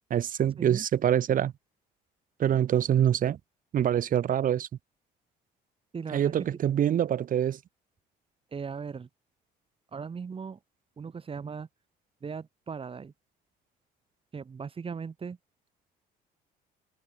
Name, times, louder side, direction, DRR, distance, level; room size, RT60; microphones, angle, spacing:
voice 1, 0.1-1.5 2.4-3.4 3.7-4.7 6.1-7.6, right 10 dB, 55° right, 3.3 m, -25 dB
voice 2, 5.9-6.5 8.5-9.1 9.9-10.6 11.0-11.7 12.2-13.1 14.3-15.4, right 5 dB, 35° right, 6.9 m, -38 dB
cardioid pair, 110°, 17 cm